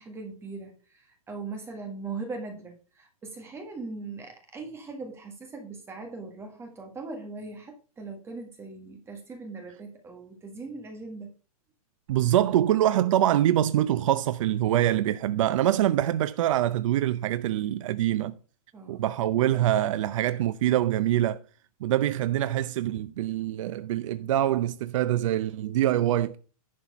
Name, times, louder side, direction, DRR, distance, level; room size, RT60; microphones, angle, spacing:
voice 1, 0.0-11.3 18.7-19.1, right 3 dB, 15° right, 1.5 m, -40 dB
voice 2, 12.1-18.4 18.9-21.4 21.8-26.4, right 12 dB, 55° right, 0.6 m, -24 dB
11.0 x 4.3 x 5.2 m
hypercardioid pair, 145°, 19 cm